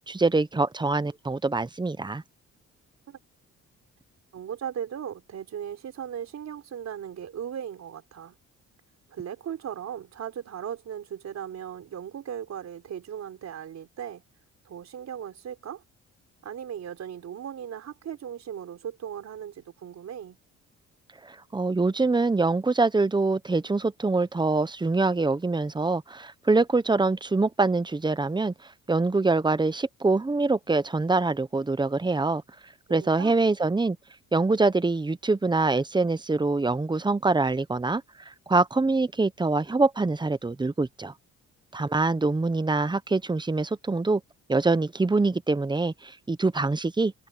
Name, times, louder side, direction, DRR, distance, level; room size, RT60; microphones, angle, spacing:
voice 1, 0.1-2.2 21.3-28.5 28.9-32.4 32.9-34.0 34.3-38.0 38.5-41.1 41.7-44.2 44.5-47.3, right 3 dB, 15° right, 1.0 m, -24 dB
voice 2, 4.3-8.3 9.1-14.2 14.6-15.8 16.4-20.4 32.9-33.4, right 9 dB, 60° right, 4.1 m, -37 dB
cardioid pair, 90°, 30 cm